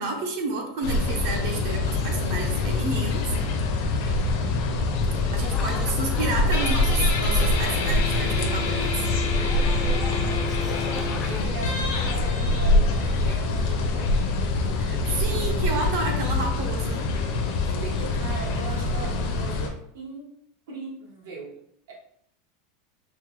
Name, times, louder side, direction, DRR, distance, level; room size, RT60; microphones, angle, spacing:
voice 1, 0.0-3.3 5.3-9.1 14.8-17.1, right 3 dB, 50° right, 2 dB, 0.7 m, -30 dB
sound 1, 0.8-19.7, left 2 dB, 50° left, 0.6 m, -25 dB
voice 2, 4.0-4.4 9.9-10.6 11.3-14.2 15.3-15.6 17.8-20.3 20.7-21.9, right 3 dB, 80° right, -2 dB, 1.3 m, -39 dB
sound 2, 5.4-11.5, left 4 dB, 20° left, 0.3 m, -38 dB
Guitar, 6.5-13.7, left 3 dB, 90° left, 0.9 m, -32 dB
4.9 x 2.2 x 3.1 m, 0.69 s
supercardioid pair, 180°, 0 cm